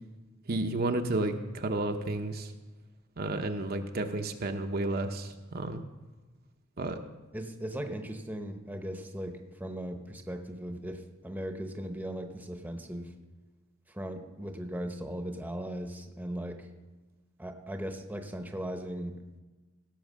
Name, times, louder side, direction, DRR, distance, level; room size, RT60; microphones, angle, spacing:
voice 1, 0.5-2.5 3.2-5.8 6.8-7.0, right 2 dB, 50° right, 5 dB, 0.7 m, -31 dB
voice 2, 7.3-13.1 13.9-16.7 17.4-19.1, right 1 dB, 10° right, 5 dB, 0.9 m, -38 dB
16.5 x 6.2 x 6.3 m, 1.2 s
head